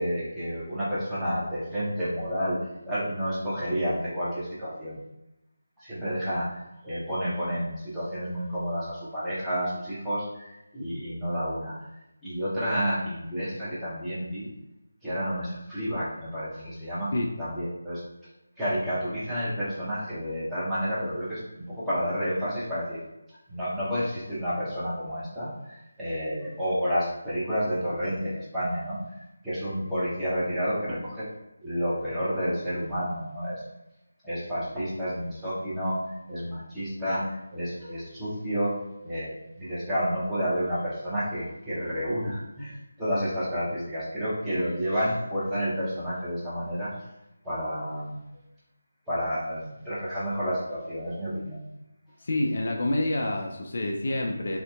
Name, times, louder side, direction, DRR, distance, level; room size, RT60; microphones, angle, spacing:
voice 1, 0.0-2.6 2.8-5.0 5.8-11.9 12.2-14.5 15.0-17.1 17.4-18.0 18.6-23.0 23.5-31.3 31.6-33.6 34.2-38.7 39.0-47.0 47.4-48.2 49.1-51.7, equal, 5° right, -13 dB, 0.7 m, -30 dB
voice 2, 52.2-54.6, left 1 dB, 50° left, 1 dB, 0.3 m, -27 dB
2.6 x 2.1 x 2.3 m, 0.90 s
figure-of-eight pair, 160°, 0 cm